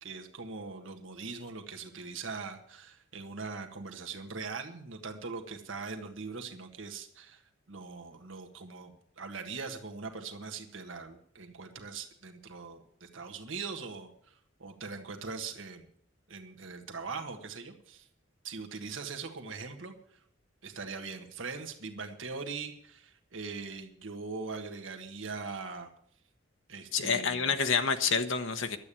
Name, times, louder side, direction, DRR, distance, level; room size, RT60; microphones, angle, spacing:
voice 1, 0.0-7.4 7.7-15.9 16.3-18.1 18.4-19.9 20.6-25.9 26.7-27.5, right 4 dB, 75° right, 4 dB, 1.6 m, -41 dB
voice 2, 26.9-28.8, left 5 dB, 70° left, 6 dB, 1.0 m, -28 dB
12.0 x 8.5 x 8.9 m, 0.64 s
head